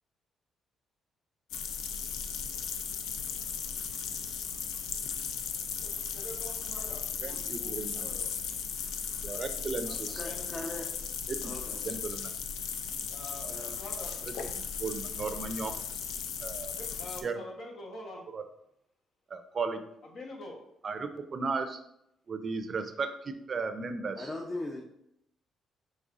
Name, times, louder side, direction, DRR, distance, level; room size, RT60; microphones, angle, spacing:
sound 1, 1.5-17.2, left 7 dB, 85° left, 0.4 m, -36 dB
voice 1, 5.8-8.3 9.8-10.7 13.1-14.2 16.7-18.2 20.1-20.6, left 1 dB, 65° left, 0 dB, 1.1 m, -46 dB
voice 2, 7.2-8.1 9.2-10.2 11.3-11.5 11.8-12.4 13.4-13.7 14.5-15.7 16.4-16.8 17.2-17.4 18.3-18.4 19.3-19.8 20.8-21.8 22.3-24.3, right 4 dB, 45° right, 8 dB, 0.5 m, -35 dB
voice 3, 10.1-10.9 11.4-12.0 13.5-13.7 24.2-24.8, left 2 dB, 25° left, 0 dB, 0.6 m, -39 dB
5.3 x 3.4 x 2.5 m, 0.77 s
cardioid pair, 90°, 0 cm